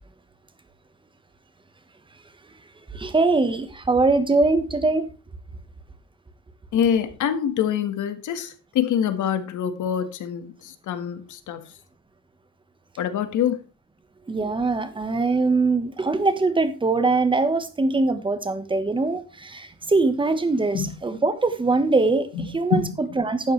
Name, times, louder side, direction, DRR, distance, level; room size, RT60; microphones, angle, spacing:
voice 1, 2.9-5.1 14.3-23.5, right 3 dB, 15° right, 1.3 m, -22 dB
voice 2, 6.7-11.7 13.0-13.6 20.7-20.9 22.3-23.0, left 8 dB, 65° left, 1.7 m, -25 dB
12.0 x 9.0 x 3.3 m
cardioid pair, 155°, 33 cm